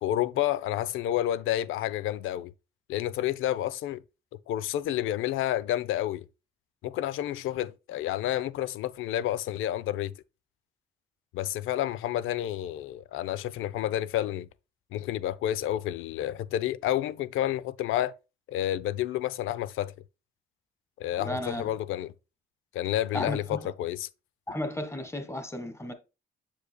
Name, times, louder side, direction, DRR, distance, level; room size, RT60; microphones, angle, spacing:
voice 1, 0.0-2.5 2.9-4.0 4.5-6.2 6.8-10.1 11.3-14.5 14.9-18.1 18.5-19.9 21.0-22.1 22.7-24.1, left 12 dB, 90° left, 0.5 m, -30 dB
voice 2, 21.2-21.6 23.1-23.7 24.5-25.9, left 1 dB, 15° left, 1.5 m, -34 dB
7.4 x 6.7 x 2.2 m
cardioid pair, 90°, 20 cm